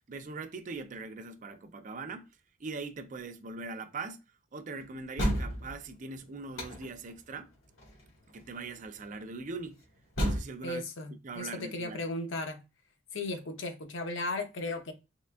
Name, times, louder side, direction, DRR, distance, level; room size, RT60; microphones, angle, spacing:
voice 1, 0.1-2.3 2.6-4.2 4.5-7.5 8.3-9.8 10.2-10.8 11.2-12.0, right 3 dB, 40° right, 0.4 m, -41 dB
sound 1, 5.2-5.8 6.6-7.1 7.8-8.0 8.4-8.5 10.2-10.4, equal, 85° left, 1.4 m, -30 dB
voice 2, 10.6-12.6 13.1-14.9, left 2 dB, 65° left, 0.7 m, -36 dB
3.7 x 3.3 x 2.2 m
head